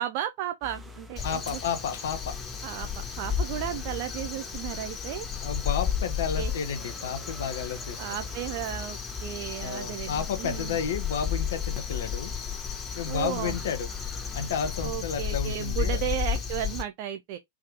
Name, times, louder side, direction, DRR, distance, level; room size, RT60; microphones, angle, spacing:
voice 1, 0.0-1.6 2.6-5.3 6.4-6.5 8.0-10.8 13.1-13.6 14.8-17.4, right 12 dB, 45° right, 0.5 m, -34 dB
sound 1, 0.6-14.9, right 1 dB, 5° right, 0.8 m, -50 dB
voice 2, 1.2-2.4 3.5-3.7 5.4-8.0 9.6-12.3 12.9-13.9 14.3-16.0, left 7 dB, 60° left, 0.7 m, -32 dB
Crow, 1.2-16.8, left 7 dB, 25° left, 1.1 m, -33 dB
3.5 x 2.8 x 3.3 m
figure-of-eight pair, 95°, 0 cm